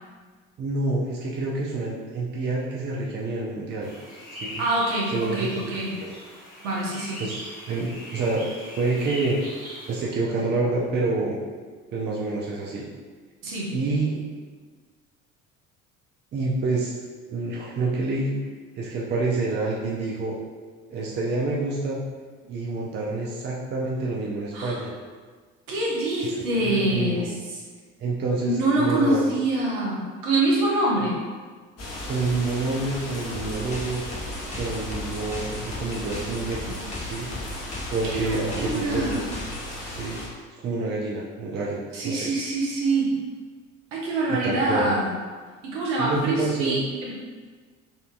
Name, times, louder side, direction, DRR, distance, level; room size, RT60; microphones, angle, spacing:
voice 1, 0.6-3.9 4.3-4.6 5.1-5.5 5.9-6.1 7.2-7.4 7.7-8.5 8.8-9.4 9.9-11.4 11.9-12.8 13.7-14.2 16.3-17.0 17.3-18.3 18.8-20.4 20.9-22.0 22.4-24.9 26.6-27.2 28.0-29.3 32.1-34.0 34.6-37.3 37.9-39.2 39.8-40.2 40.6-42.3 44.3-45.0 46.0-46.8, right 3 dB, 25° right, -3 dB, 0.5 m, -27 dB
sound 1, 3.8-10.0, left 1 dB, 90° right, 0.9 m, -40 dB
voice 2, 4.6-5.9 6.6-7.2 13.4-13.7 24.5-24.8 25.7-27.6 28.4-31.2 38.0-39.2 41.9-43.2 43.9-45.1 45.6-47.1, right 2 dB, 60° right, -4 dB, 1.1 m, -25 dB
sound 2, 31.8-40.3, left 1 dB, 35° left, 0.9 m, -36 dB
sound 3, 33.3-39.7, left 1 dB, 15° left, 0.6 m, -37 dB
4.1 x 2.6 x 2.5 m, 1.5 s
figure-of-eight pair, 60°, 41 cm